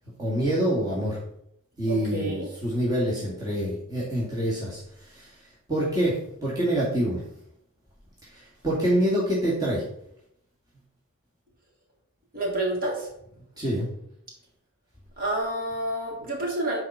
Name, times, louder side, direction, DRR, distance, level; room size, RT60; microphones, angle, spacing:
voice 1, 0.2-1.2 1.8-5.3 5.7-7.2 8.3-9.8 13.6-13.9, right 1 dB, 20° right, -6 dB, 2.3 m, -26 dB
voice 2, 1.9-2.5 12.3-13.1 15.2-16.8, right 1 dB, 45° right, -3 dB, 3.5 m, -29 dB
10.5 x 4.8 x 5.8 m, 0.75 s
head